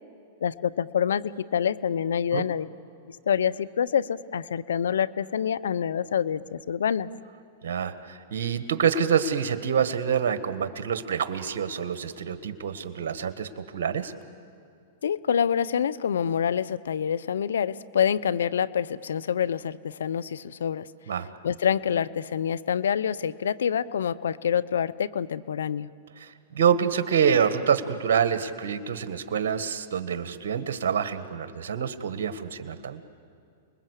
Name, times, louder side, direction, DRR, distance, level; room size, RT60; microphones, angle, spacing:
voice 1, 0.4-2.7 3.1-7.1 15.0-20.9 21.4-25.9, left 8 dB, 85° left, 17 dB, 0.7 m, -26 dB
voice 2, 7.6-14.1 21.1-21.3 26.2-33.0, right 7 dB, 75° right, 10 dB, 1.6 m, -26 dB
29.5 x 21.0 x 8.3 m, 2.5 s
hypercardioid pair, 120°, 0 cm